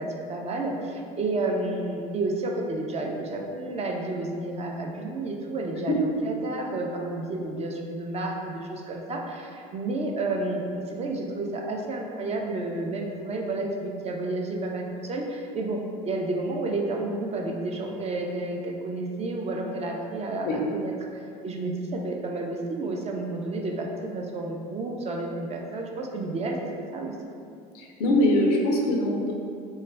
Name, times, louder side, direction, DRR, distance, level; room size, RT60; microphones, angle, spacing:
voice 1, 0.0-15.8 16.0-26.6 26.9-27.1, right 2 dB, 35° right, 0 dB, 0.4 m, -31 dB
voice 2, 27.7-29.3, left 1 dB, 80° left, 0 dB, 0.5 m, -23 dB
2.3 x 2.1 x 3.2 m, 2.3 s
hypercardioid pair, 75°, 20 cm